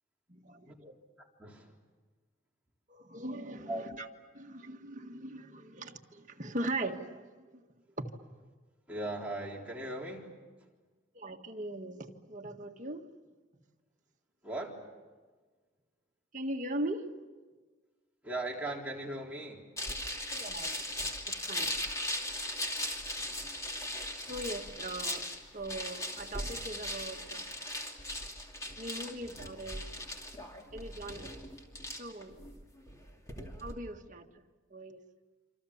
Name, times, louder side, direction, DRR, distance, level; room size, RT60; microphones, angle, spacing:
voice 1, 0.3-0.9 2.9-4.1 4.3-7.7 8.0-8.1 11.1-13.1 16.3-17.1 20.3-20.8 21.3-21.8 24.3-25.3 25.5-27.5 28.7-30.0 30.7-31.3 32.0-32.3 33.6-34.4 34.7-35.0, right 1 dB, 40° right, 1.7 m, -40 dB
voice 2, 1.4-1.8 3.7-3.8 8.9-10.3 14.4-14.9 18.2-19.7, right 1 dB, 5° right, 3.8 m, -38 dB
sound 1, 19.8-33.7, left 1 dB, 15° left, 2.7 m, -38 dB
27.0 x 26.5 x 7.2 m
head